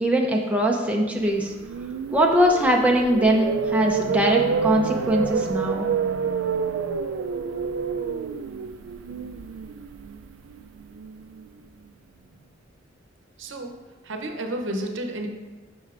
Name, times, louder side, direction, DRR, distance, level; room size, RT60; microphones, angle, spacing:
voice 1, 0.0-1.5 2.1-5.9, equal, 5° right, 0 dB, 0.5 m, -21 dB
sound 1, 1.3-11.5, right 6 dB, 90° right, 0.3 m, -28 dB
voice 2, 13.4-13.8 14.1-15.3, right 1 dB, 70° right, 4 dB, 0.8 m, -31 dB
9.1 x 5.4 x 2.5 m, 1.2 s
head